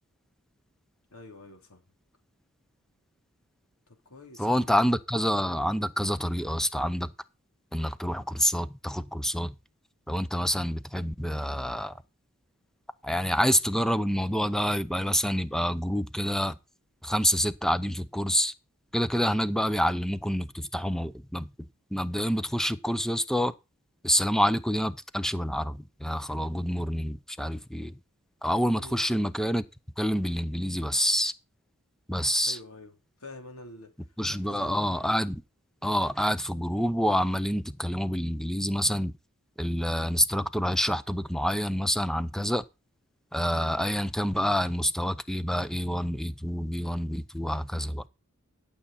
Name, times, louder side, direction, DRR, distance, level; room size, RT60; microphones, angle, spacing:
voice 1, 1.1-1.8 3.9-5.0 28.7-28.9 32.4-32.9 33.2-33.9 34.2-34.8, left 1 dB, 75° left, 3.3 m, -47 dB
voice 2, 4.4-7.1 7.7-9.6 10.1-11.9 13.0-16.6 17.0-18.5 18.9-21.5 21.9-23.5 24.0-28.0 28.4-29.6 30.0-31.3 32.1-32.6 34.2-35.4 35.8-39.1 39.6-42.6 43.3-48.0, equal, ahead, 0.6 m, -27 dB
12.0 x 7.1 x 4.2 m
head